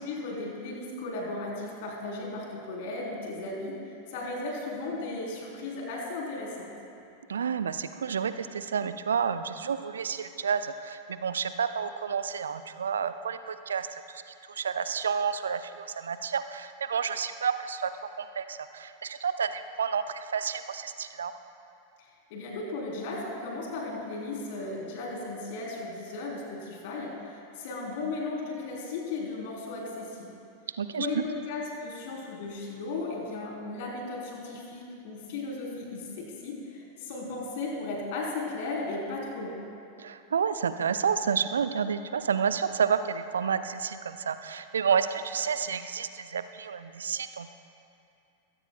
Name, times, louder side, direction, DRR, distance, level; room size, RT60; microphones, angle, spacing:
voice 1, 0.0-6.7 22.0-30.3 31.0-39.6, left 3 dB, 50° left, -2 dB, 3.9 m, -36 dB
voice 2, 7.3-14.2 14.5-21.3 30.8-31.1 40.0-47.5, right 7 dB, 70° right, 11 dB, 0.6 m, -30 dB
21.5 x 16.5 x 2.3 m, 2.6 s
figure-of-eight pair, 90°, 0 cm